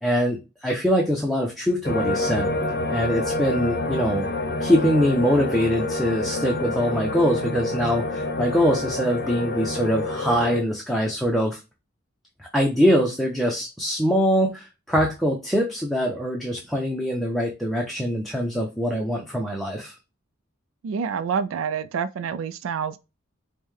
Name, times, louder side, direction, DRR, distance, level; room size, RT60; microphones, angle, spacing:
voice 1, 0.0-2.5 2.9-4.3 4.6-11.6 12.5-20.0, equal, ahead, 0.6 m, -23 dB
sound 1, 1.8-10.6, left 2 dB, 55° left, 0.6 m, -27 dB
voice 2, 20.8-23.0, right 6 dB, 80° right, 0.3 m, -27 dB
5.3 x 2.2 x 3.1 m
head